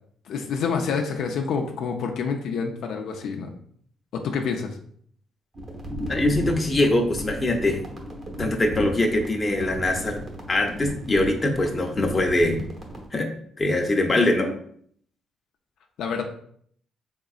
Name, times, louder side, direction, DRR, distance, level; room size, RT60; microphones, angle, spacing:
voice 1, 0.3-3.5 4.1-4.8 16.0-16.2, left 5 dB, 75° left, 2 dB, 0.5 m, -27 dB
sound 1, 5.5-13.1, equal, 40° right, 1.0 m, -34 dB
voice 2, 6.1-7.8 8.4-10.2 10.5-12.6 13.1-13.3 13.6-14.6, left 1 dB, 25° left, 3 dB, 0.7 m, -22 dB
3.8 x 3.6 x 2.4 m, 0.62 s
cardioid pair, 90°, 0 cm